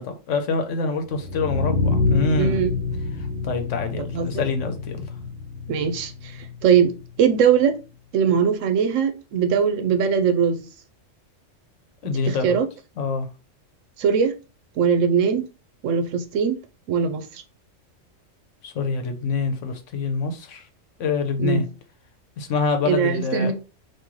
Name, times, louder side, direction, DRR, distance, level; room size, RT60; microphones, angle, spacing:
voice 1, 0.0-2.6 3.4-5.0 12.0-12.6 13.0-13.3 18.6-20.6 21.0-21.7 22.4-23.5, left 4 dB, 75° left, 1.1 m, -26 dB
sound 1, 1.1-7.1, left 3 dB, 45° right, 1.5 m, -27 dB
voice 2, 2.4-2.8 4.1-4.4 5.7-6.9 7.2-7.7 8.1-10.6 12.3-12.7 14.0-14.3 14.8-15.5 15.8-16.6 16.9-17.4 21.4-21.6 22.8-23.5, right 7 dB, 80° right, 1.0 m, -21 dB
3.0 x 2.6 x 3.6 m
omnidirectional pair, 1.3 m